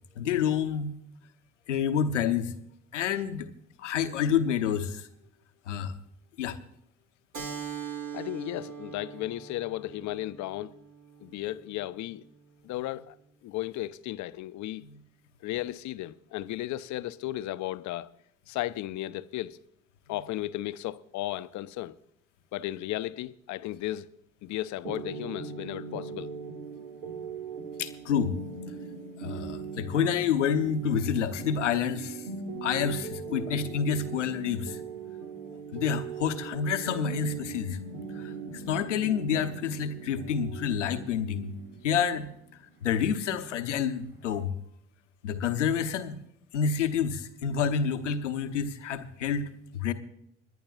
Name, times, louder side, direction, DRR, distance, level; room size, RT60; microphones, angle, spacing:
voice 1, 0.2-1.0 1.7-2.5 2.9-3.5 3.8-5.1 5.7-5.9 6.4-6.6 14.8-14.9 27.8-28.3 29.2-32.2 32.6-34.8 35.7-37.8 38.1-41.6 41.8-42.3 42.8-44.5 45.2-46.2 46.5-49.9, left 7 dB, 85° left, 0.9 m, -28 dB
Keyboard (musical), 7.3-12.5, right 7 dB, 50° right, 2.6 m, -42 dB
voice 2, 8.1-10.7 11.2-12.2 12.6-13.2 13.4-14.9 15.4-18.1 18.5-19.6 20.1-22.0 22.5-24.1 24.4-26.3, left 15 dB, 55° left, 0.7 m, -35 dB
sound 1, 24.8-44.4, right 5 dB, 75° right, 1.8 m, -40 dB
27.0 x 11.0 x 2.4 m
figure-of-eight pair, 50°, 35 cm